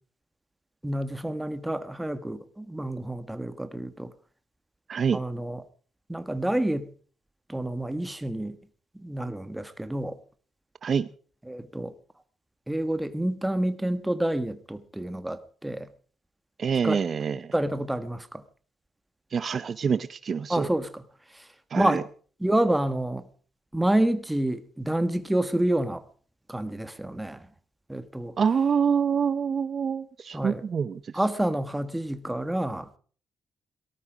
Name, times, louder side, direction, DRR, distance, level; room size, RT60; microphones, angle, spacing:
voice 1, 0.8-4.1 5.1-5.6 6.1-6.9 7.5-8.6 8.9-10.2 11.5-11.9 12.7-15.9 16.8-17.0 17.5-18.4 20.5-21.0 21.3-21.4 21.7-22.0 22.4-23.3 23.7-26.0 26.5-27.5 27.9-28.3 30.3-30.6 31.1-33.0, right 1 dB, 10° right, 11 dB, 1.5 m, -28 dB
voice 2, 4.9-5.2 10.8-11.1 16.6-17.5 19.3-20.7 21.7-22.0 28.4-31.1, right 6 dB, 45° right, 15 dB, 0.6 m, -26 dB
18.0 x 13.0 x 5.0 m, 0.43 s
cardioid pair, 90°, 0 cm